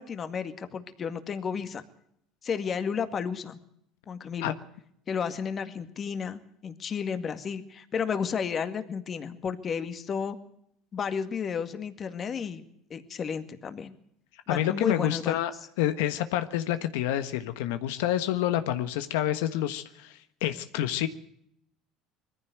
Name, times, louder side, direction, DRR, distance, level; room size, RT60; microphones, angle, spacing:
voice 1, 0.0-1.8 2.4-3.6 4.1-4.5 5.1-10.4 10.9-12.6 12.9-14.0 14.5-15.4, left 6 dB, 35° left, 10 dB, 2.0 m, -32 dB
voice 2, 14.5-15.5 15.8-21.1, left 12 dB, 90° left, 10 dB, 1.4 m, -28 dB
21.5 x 15.0 x 8.0 m, 0.72 s
supercardioid pair, 120°, 0 cm